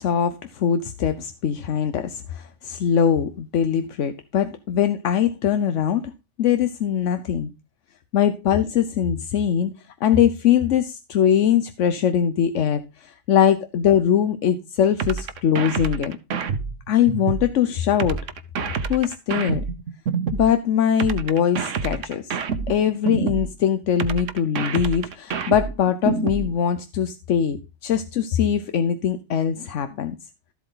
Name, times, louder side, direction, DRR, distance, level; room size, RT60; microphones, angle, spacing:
voice 1, 0.0-6.1 6.4-7.5 8.1-9.7 10.0-16.2 16.9-18.2 18.9-19.6 20.3-22.4 22.7-30.2, left 8 dB, 80° left, 1.1 m, -22 dB
sound 1, 15.0-17.5 18.0-20.5 21.0-23.5 24.0-26.5, right 6 dB, 90° right, 1.3 m, -27 dB
13.0 x 8.2 x 3.9 m
omnidirectional pair, 1.2 m